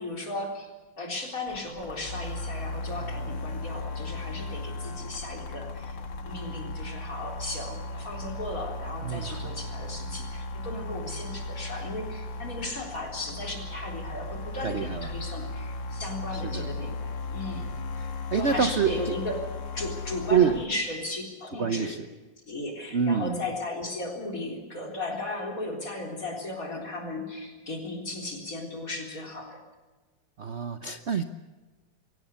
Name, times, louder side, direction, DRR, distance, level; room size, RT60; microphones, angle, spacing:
voice 1, 0.0-17.7 18.3-22.0 22.5-29.6, left 2 dB, 45° left, 2 dB, 4.4 m, -36 dB
sound 1, 1.5-20.7, left 2 dB, 80° left, 2.3 m, -36 dB
voice 2, 9.0-9.4 14.6-15.1 16.3-16.7 18.0-19.1 20.3-20.5 21.6-22.0 22.9-23.4 30.4-31.3, right 7 dB, 50° right, 9 dB, 0.9 m, -26 dB
23.5 x 17.5 x 8.2 m, 1.2 s
omnidirectional pair, 2.0 m